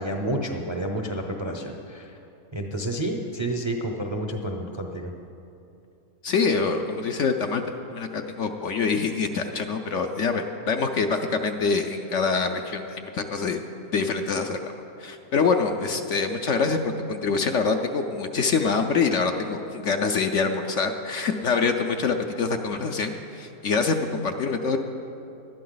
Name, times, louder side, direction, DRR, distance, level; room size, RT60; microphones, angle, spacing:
voice 1, 0.0-2.1 2.5-5.1, right 1 dB, 25° right, 2 dB, 0.6 m, -30 dB
voice 2, 6.2-7.6 7.9-13.6 13.9-14.7 15.0-24.8, left 4 dB, 60° left, 5 dB, 0.9 m, -25 dB
19.0 x 12.0 x 4.0 m, 2.8 s
omnidirectional pair, 1.6 m